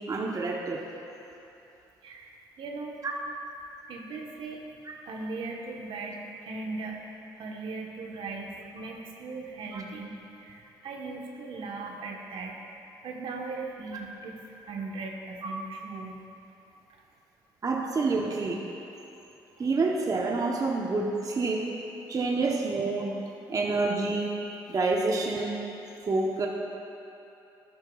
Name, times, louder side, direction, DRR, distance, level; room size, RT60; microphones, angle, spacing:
voice 1, 0.1-0.8 3.0-3.1 4.9-5.0 9.7-9.8 17.6-18.7 19.6-21.7 22.1-23.2 23.5-24.4 24.7-25.6 26.1-26.5, right 3 dB, 40° right, 0 dB, 0.9 m, -28 dB
voice 2, 2.0-3.0 3.9-4.6 5.0-7.0 7.4-12.5 13.0-16.2, right 3 dB, 65° right, 0 dB, 1.2 m, -38 dB
13.0 x 10.5 x 2.4 m, 2.9 s
supercardioid pair, 55°, 10 cm